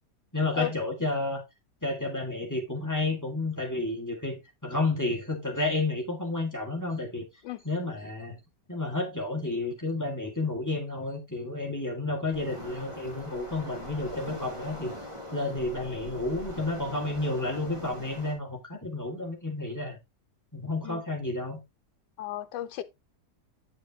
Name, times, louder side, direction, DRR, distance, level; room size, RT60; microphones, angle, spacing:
voice 1, 0.3-1.4 1.8-7.2 7.6-8.4 8.7-14.9 15.3-20.0 20.5-21.6, left 2 dB, 10° left, 1.9 m, -31 dB
Waves surf, 12.3-18.3, left 1 dB, 15° right, 2.6 m, -41 dB
voice 2, 22.2-22.8, left 13 dB, 85° left, 1.3 m, -34 dB
8.3 x 6.6 x 2.8 m
omnidirectional pair, 1.8 m